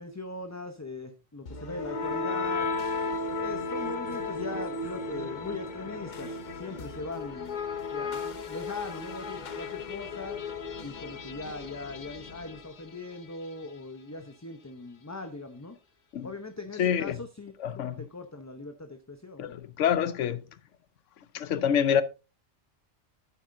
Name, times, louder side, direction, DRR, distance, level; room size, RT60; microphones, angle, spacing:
voice 1, 0.0-2.7 3.4-7.6 7.9-10.4 10.8-15.8 16.2-19.5, left 3 dB, 15° left, 0.7 m, -40 dB
sound 1, 1.5-13.4, left 3 dB, 45° left, 0.8 m, -35 dB
voice 2, 16.8-17.2 17.6-18.0 19.4-20.4 21.3-22.0, left 8 dB, 85° left, 1.1 m, -26 dB
11.5 x 8.4 x 2.6 m
omnidirectional pair, 1.2 m